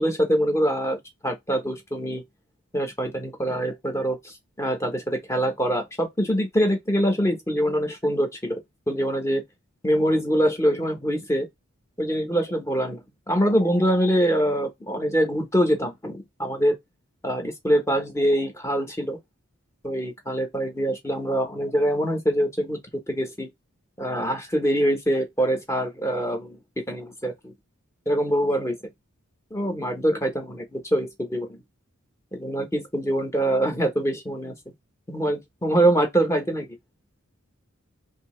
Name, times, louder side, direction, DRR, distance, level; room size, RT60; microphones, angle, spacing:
voice 1, 0.0-2.2 2.7-8.6 8.9-9.4 9.8-11.5 12.0-16.8 17.2-19.2 19.8-22.8 23.1-23.5 24.0-26.6 26.9-27.5 28.1-28.8 29.5-31.6 32.3-34.5 35.1-36.8, equal, 15° left, 1.0 m, -24 dB
2.9 x 2.8 x 3.1 m
head